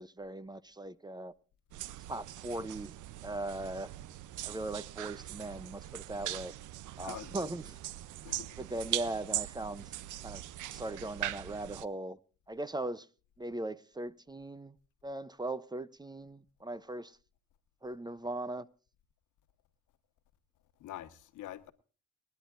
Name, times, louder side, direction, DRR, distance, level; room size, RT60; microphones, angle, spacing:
voice 1, 0.0-1.3 2.0-2.9 3.2-3.9 4.4-6.5 7.0-7.8 8.6-9.9 10.2-12.2 12.5-13.1 13.4-14.8 15.0-17.2 17.8-18.7, right 2 dB, 15° right, 0.6 m, -39 dB
sound 1, 1.7-11.9, right 14 dB, 80° right, 0.7 m, -41 dB
voice 2, 7.0-7.5 8.2-8.5 20.8-21.7, left 12 dB, 85° left, 1.3 m, -45 dB
29.5 x 10.5 x 2.5 m
cardioid pair, 90°, 30 cm